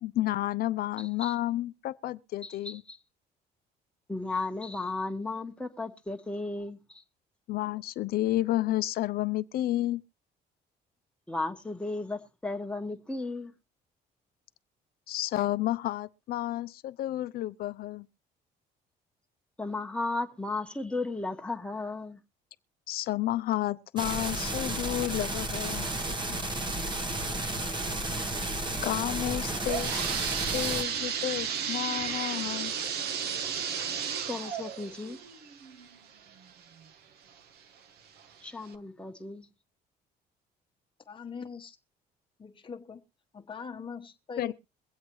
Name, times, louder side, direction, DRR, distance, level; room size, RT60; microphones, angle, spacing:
voice 1, 0.0-2.8 7.5-10.0 15.1-18.1 22.9-26.2 26.5-26.6 28.8-30.0 30.5-32.7 44.4-44.5, left 14 dB, 65° left, 0.6 m, -31 dB
voice 2, 2.4-3.0 4.1-6.8 11.3-13.5 19.6-22.2 34.3-35.2 38.4-39.5, left 3 dB, 5° left, 1.2 m, -34 dB
sound 1, 24.0-30.8, right 1 dB, 25° right, 1.1 m, -32 dB
sound 2, 29.3-36.9 37.4-37.5 38.2-38.3 38.7-38.8, right 7 dB, 70° right, 1.1 m, -34 dB
voice 3, 41.1-41.8 42.4-43.0 43.3-44.5, left 5 dB, 30° left, 1.2 m, -41 dB
23.0 x 8.0 x 3.0 m
cardioid pair, 110°, 17 cm